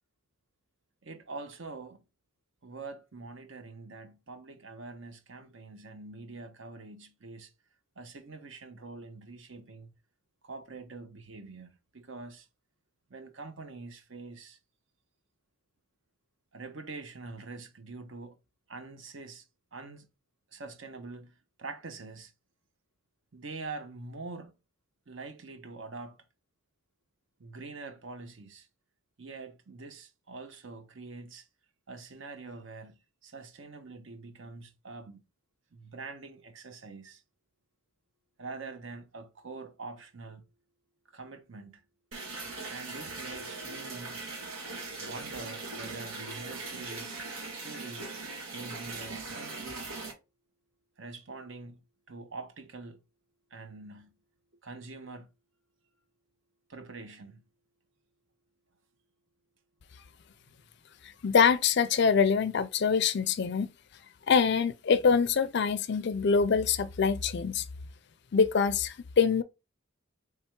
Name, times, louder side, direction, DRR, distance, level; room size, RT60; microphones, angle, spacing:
voice 1, 1.0-2.0 2.6-7.5 8.0-9.9 10.4-12.5 13.1-14.6 16.5-18.4 18.7-20.1 20.5-22.3 23.3-24.6 25.1-26.2 27.4-28.7 29.2-31.5 31.9-35.2 35.7-37.2 38.4-40.4 41.1-41.8 42.7-44.2 45.0-47.2 47.5-48.1 48.4-49.9 51.0-51.8 52.1-53.0 53.5-54.1 54.6-55.3 56.7-57.4, right 3 dB, 65° right, 0.8 m, -45 dB
sound 1, 42.1-50.1, right 3 dB, 90° right, 1.7 m, -40 dB
voice 2, 61.2-63.7 64.3-67.6 68.3-69.4, left 6 dB, 55° left, 0.4 m, -24 dB
3.3 x 3.3 x 4.5 m
head